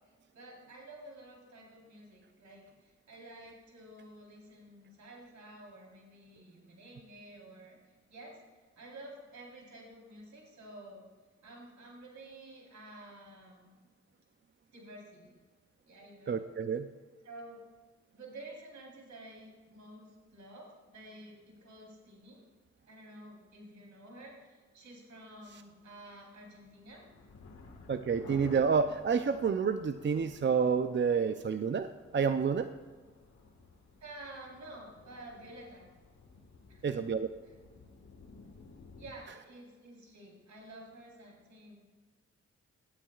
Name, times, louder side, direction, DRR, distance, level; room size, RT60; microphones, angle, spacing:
voice 1, 0.3-7.8 8.1-8.4 8.8-11.1 11.4-13.7 14.7-15.4 15.9-16.4 17.2-17.6 18.1-22.4 22.9-27.0 34.0-35.9 36.7-36.9 39.0-41.8, right 1 dB, 75° right, -1 dB, 3.9 m, -51 dB
voice 2, 16.3-16.9 27.9-32.7 36.8-37.3, right 6 dB, 40° right, 9 dB, 0.6 m, -29 dB
sound 1, 26.3-39.1, left 4 dB, 70° left, 1.7 m, -54 dB
17.5 x 12.0 x 2.4 m, 1.4 s
cardioid pair, 55°, 29 cm